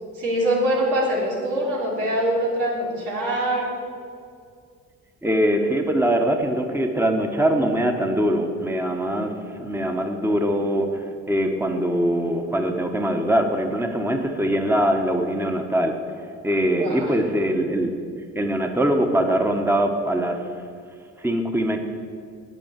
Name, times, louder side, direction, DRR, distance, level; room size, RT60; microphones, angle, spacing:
voice 1, 0.1-3.8 16.8-17.1, right 1 dB, 90° right, -3 dB, 3.2 m, -23 dB
voice 2, 5.2-9.3 9.6-16.0 16.4-17.9 18.3-20.4 21.2-21.8, right 1 dB, 10° right, 4 dB, 1.1 m, -22 dB
8.6 x 8.2 x 7.5 m, 2.3 s
cardioid pair, 90°, 30 cm